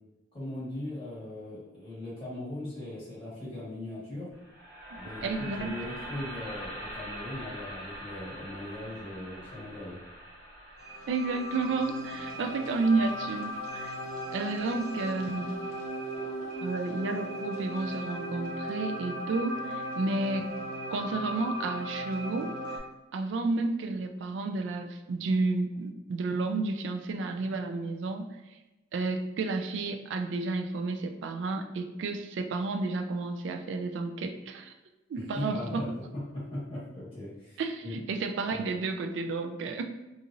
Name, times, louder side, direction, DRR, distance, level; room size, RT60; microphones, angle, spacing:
voice 1, 0.3-4.3 4.9-10.0 35.3-35.9 36.1-37.9 38.5-38.6, left 1 dB, 30° left, -10 dB, 1.4 m, -39 dB
sound 1, 4.3-14.4, equal, 10° right, 1.3 m, -44 dB
voice 2, 4.9-5.8 11.1-14.0 14.3-15.6 16.6-20.5 20.9-22.6 23.1-28.3 28.9-34.7 35.1-35.8 37.6-39.8, right 3 dB, 85° right, 6 dB, 0.3 m, -31 dB
sound 2, 10.8-22.8, equal, 50° right, 0.6 m, -37 dB
2.9 x 2.4 x 2.5 m, 1.0 s
head